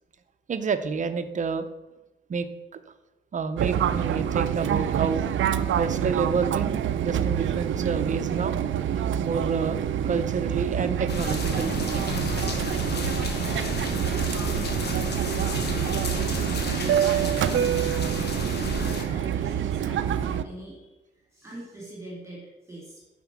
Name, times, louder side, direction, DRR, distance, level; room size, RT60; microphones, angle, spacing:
voice 1, 0.5-1.7 2.3-2.5 2.7-2.8 3.3-8.6 8.9-11.8, right 5 dB, 40° right, 9 dB, 0.6 m, -29 dB
Fixed-wing aircraft airplane, 3.6-20.4, right 9 dB, 85° right, 0.4 m, -26 dB
sound 1, 11.1-19.0, left 3 dB, 60° left, 1.2 m, -32 dB
voice 2, 12.7-23.0, right 1 dB, 15° right, -4 dB, 2.1 m, -42 dB
9.6 x 4.3 x 5.9 m, 1.0 s
wide cardioid pair, 170°, 19 cm